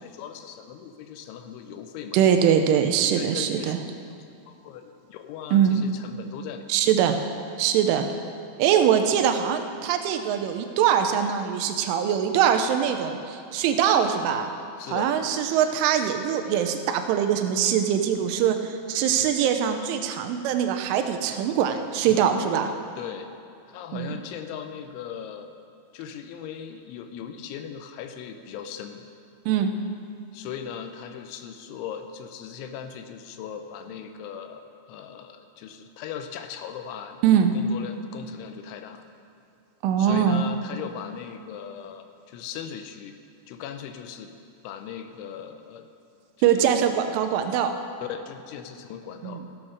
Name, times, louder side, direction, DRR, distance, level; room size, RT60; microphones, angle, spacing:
voice 1, 0.0-2.2 3.1-3.7 4.1-4.2 4.5-6.7 14.8-15.1 22.1-22.3 23.0-23.3 23.7-25.5 25.9-29.1 30.3-37.2 37.5-39.0 40.0-43.2 43.5-44.3 44.6-45.9 46.4-46.8 48.0-49.4, left 8 dB, 85° left, 7 dB, 3.0 m, -38 dB
voice 2, 2.1-3.8 5.5-5.8 6.7-7.2 7.6-8.1 8.6-14.5 14.9-22.7 23.9-24.1 29.5-29.7 37.2-37.5 39.8-40.5 46.4-47.7 49.2-49.4, right 9 dB, 85° right, 6 dB, 3.2 m, -22 dB
15.0 x 7.6 x 6.4 m, 2.6 s
omnidirectional pair, 5.5 m